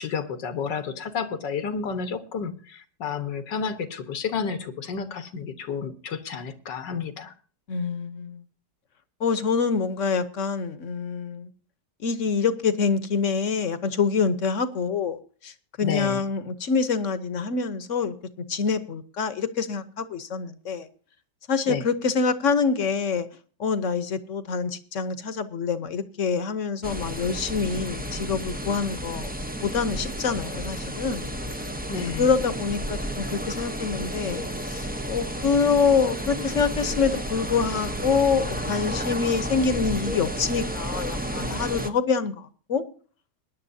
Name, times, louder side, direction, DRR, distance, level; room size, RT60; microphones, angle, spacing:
voice 1, 0.0-7.3 15.8-16.2 21.7-21.9 31.9-32.3, left 6 dB, 85° left, 2.0 m, -31 dB
voice 2, 7.7-8.4 9.2-11.5 12.0-15.2 15.4-18.1 18.5-20.9 21.5-23.3 23.6-29.3 29.6-31.3 32.2-42.8, left 5 dB, 50° left, 1.2 m, -26 dB
sound 1, 26.8-41.9, equal, 10° right, 0.4 m, -32 dB
21.5 x 10.5 x 2.7 m
omnidirectional pair, 1.9 m